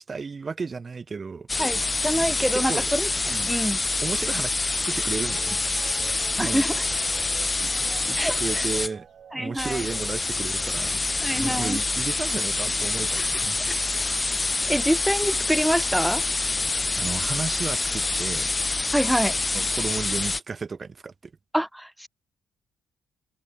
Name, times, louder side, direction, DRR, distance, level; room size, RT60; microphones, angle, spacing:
voice 1, 0.0-1.5 2.1-2.9 3.2-3.5 4.0-6.0 6.3-6.8 7.6-7.7 8.0-9.1 9.3-11.0 11.4-13.6 13.9-14.0 16.9-18.5 19.5-21.3, right 4 dB, 35° right, 1.0 m, -34 dB
sound 1, 1.5-8.9 9.6-20.4, left 3 dB, 20° left, 0.5 m, -26 dB
voice 2, 1.6-3.1 3.5-3.8 6.4-6.8 8.2-8.6 9.3-9.8 11.2-11.8 13.2-13.3 14.7-16.2 18.9-19.4 21.5-22.1, equal, 5° right, 1.0 m, -26 dB
sound 2, 4.8-15.0 15.9-16.3 17.0-18.0 19.8-19.9, right 9 dB, 60° right, 2.9 m, -48 dB
sound 3, 8.7-14.8, left 8 dB, 60° left, 6.7 m, -49 dB
cardioid pair, 90°, 0 cm